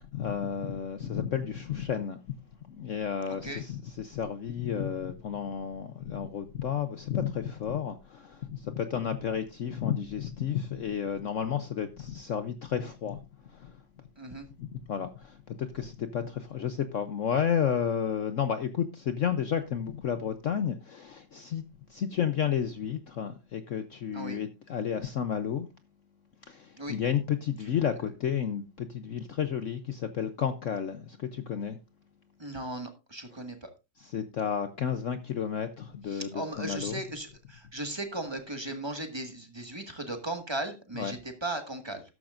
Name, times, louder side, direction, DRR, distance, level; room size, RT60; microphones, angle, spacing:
voice 1, 0.0-2.4 2.7-13.8 14.6-21.6 21.9-25.7 26.5-31.8 34.0-37.0 41.0-41.2, left 8 dB, 60° left, 0.9 m, -32 dB
voice 2, 14.2-14.5 24.1-24.4 26.8-26.9 32.4-33.7 36.1-42.0, right 1 dB, 15° right, 1.6 m, -37 dB
13.5 x 11.0 x 2.5 m
omnidirectional pair, 1.9 m